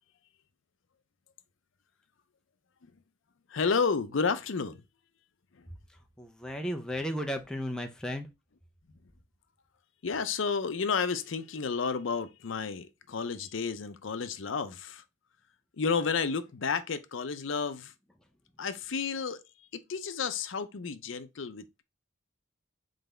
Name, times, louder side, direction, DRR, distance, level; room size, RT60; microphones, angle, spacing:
voice 1, 3.5-4.8 5.5-5.6 10.0-15.0 15.8-17.9 18.6-21.8, left 5 dB, 65° left, 0.6 m, -31 dB
voice 2, 6.2-8.3, equal, 5° left, 0.5 m, -34 dB
4.0 x 3.9 x 3.3 m
head